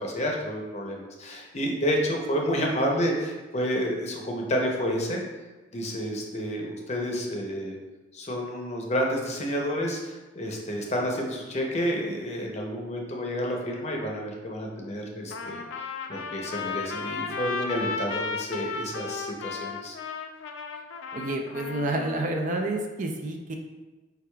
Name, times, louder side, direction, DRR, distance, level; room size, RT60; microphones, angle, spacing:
voice 1, 0.0-5.2 5.7-7.7 8.1-15.6 16.1-20.0, equal, 35° left, 0 dB, 0.7 m, -30 dB
Trumpet, 15.3-22.3, left 4 dB, 80° left, 0.4 m, -34 dB
voice 2, 21.1-23.5, right 2 dB, 40° right, 3 dB, 0.4 m, -29 dB
4.7 x 4.7 x 2.3 m, 1.2 s
head